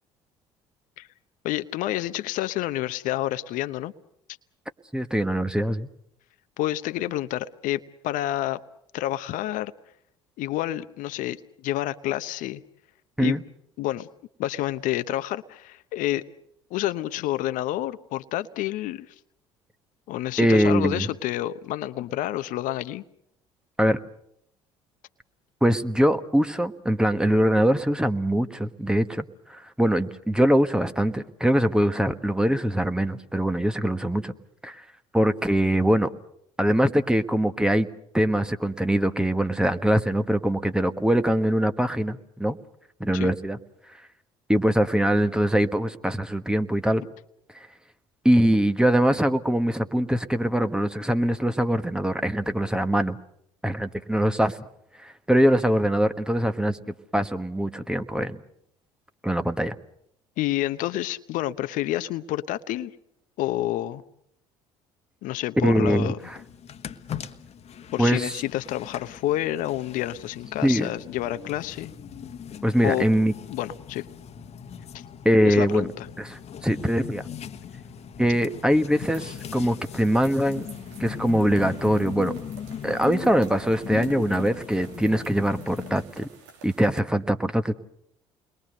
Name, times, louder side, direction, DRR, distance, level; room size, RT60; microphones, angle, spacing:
voice 1, 1.4-3.9 6.6-8.6 8.9-9.7 10.4-12.6 13.2-13.4 13.8-14.1 14.4-16.2 16.7-19.1 20.1-23.0 43.1-43.3 60.4-62.9 63.4-64.0 65.2-66.2 67.9-71.9 72.8-73.1 73.5-74.1 74.9-75.0 75.4-76.1, left 14 dB, 65° left, 12 dB, 0.9 m, -29 dB
voice 2, 4.9-5.9 13.2-13.4 20.4-21.1 23.8-24.0 25.6-34.3 34.6-34.9 35.1-36.1 36.6-37.9 38.1-42.6 43.0-43.6 44.5-47.0 48.2-53.2 53.6-54.6 55.0-58.4 59.2-59.7 65.6-66.4 68.0-68.3 70.6-70.9 72.6-73.3 75.2-75.9 76.2-77.2 78.2-80.7 81.0-82.3 82.8-86.3 86.6-87.7, equal, 5° right, 10 dB, 1.5 m, -23 dB
sound 1, 66.2-86.1, left 8 dB, 45° left, 1.4 m, -39 dB
sound 2, 79.0-87.0, right 5 dB, 80° right, 2.5 m, -49 dB
29.0 x 22.0 x 6.6 m, 0.73 s
hypercardioid pair, 60°, 15 cm